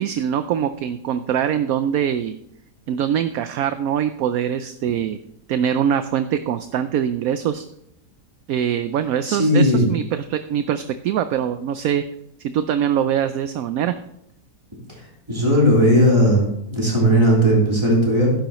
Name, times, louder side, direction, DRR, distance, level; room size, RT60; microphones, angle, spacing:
voice 1, 0.0-2.4 2.9-5.2 5.5-7.6 8.5-12.0 12.4-13.9, right 9 dB, 70° right, 11 dB, 0.9 m, -23 dB
voice 2, 9.2-9.9 14.9-15.0 15.3-18.3, equal, 15° right, -3 dB, 3.5 m, -17 dB
12.0 x 10.0 x 3.0 m, 0.76 s
omnidirectional pair, 1.8 m